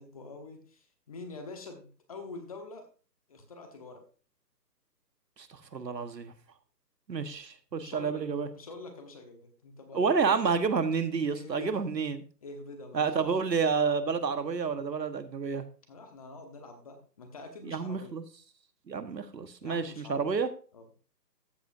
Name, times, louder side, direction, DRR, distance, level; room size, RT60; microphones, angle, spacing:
voice 1, 0.0-2.9 3.3-4.0 7.7-10.2 11.3-11.9 12.4-13.4 15.9-18.2 19.6-20.4 20.7-20.9, left 3 dB, 20° left, 6 dB, 1.1 m, -46 dB
voice 2, 5.4-6.3 7.1-8.5 9.9-12.2 12.9-15.6 17.6-18.2 18.9-20.5, right 5 dB, 80° right, 10 dB, 1.4 m, -29 dB
14.0 x 7.8 x 2.6 m, 0.38 s
hypercardioid pair, 160°, 50 cm